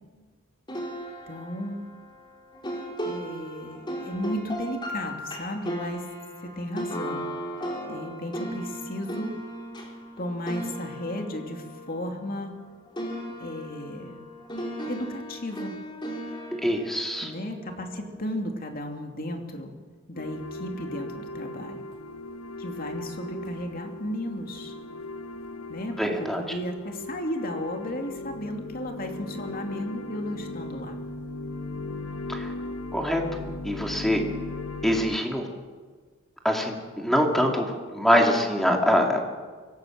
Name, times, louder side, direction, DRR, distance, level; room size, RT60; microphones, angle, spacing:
sound 1, 0.7-12.7 13.0-18.2, equal, 20° left, 3.8 m, -36 dB
voice 1, 1.3-1.8 3.0-6.1 6.4-7.3 7.9-9.3 10.2-12.5 13.4-14.2 14.8-15.8 17.2-19.7 20.1-21.8 22.6-24.7 25.7-31.0, left 1 dB, 45° left, 3 dB, 2.8 m, -34 dB
voice 2, 16.6-17.3 26.0-26.4 32.3-32.5 32.9-33.2 33.6-34.2 34.8-35.5 36.4-39.2, equal, ahead, 1 dB, 2.8 m, -24 dB
sound 2, 20.2-35.2, left 2 dB, 85° left, 1.3 m, -38 dB
24.5 x 18.0 x 7.5 m, 1.5 s
head